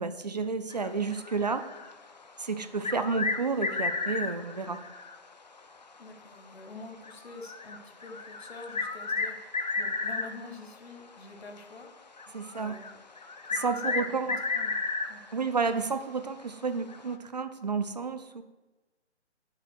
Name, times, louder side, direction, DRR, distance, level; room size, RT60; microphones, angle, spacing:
voice 1, 0.0-1.6 2.4-4.8 12.3-12.8 13.5-14.4 15.3-18.4, right 4 dB, 40° right, 10 dB, 0.4 m, -31 dB
sound 1, 0.7-2.2 2.7-5.3 5.6-5.7 6.3-6.4 7.0-10.6 11.4-11.6 12.2-15.3 15.7-15.8 16.9-17.1, left 4 dB, 40° left, 0.4 m, -33 dB
voice 2, 6.0-11.9 12.5-13.0 13.5-15.2, left 3 dB, 60° left, 5 dB, 1.2 m, -47 dB
6.7 x 4.9 x 6.1 m, 1.2 s
figure-of-eight pair, 145°, 35 cm